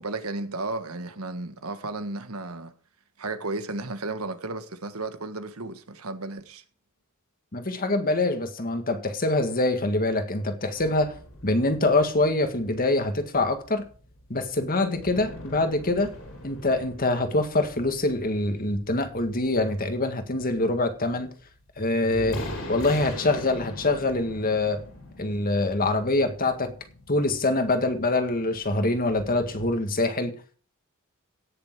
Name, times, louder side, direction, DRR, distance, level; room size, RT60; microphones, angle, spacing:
voice 1, 0.0-2.7 3.2-6.6, right 2 dB, 85° right, 1.6 m, -33 dB
voice 2, 7.5-11.1 11.4-13.8 14.3-16.1 16.4-21.3 21.8-24.8 25.2-26.7 27.1-30.3, left 2 dB, 40° left, 1.8 m, -25 dB
sound 1, 10.7-29.7, left 1 dB, 65° left, 4.5 m, -43 dB
17.5 x 6.8 x 4.7 m
head